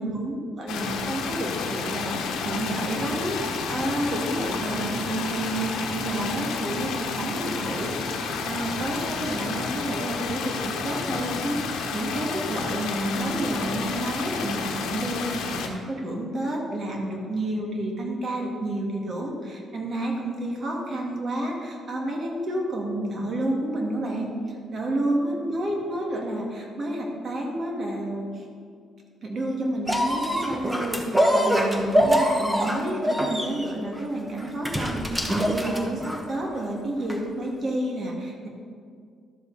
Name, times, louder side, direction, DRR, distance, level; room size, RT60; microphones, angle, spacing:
voice 1, 0.0-28.5 29.2-38.5, right 1 dB, 50° right, 0 dB, 2.0 m, -30 dB
sound 1, 0.7-15.7, left 5 dB, 90° left, 1.0 m, -30 dB
sound 2, 29.9-36.4 37.1-37.2, equal, 5° right, 1.1 m, -24 dB
12.0 x 7.2 x 4.1 m, 2.2 s
cardioid pair, 90°, 0 cm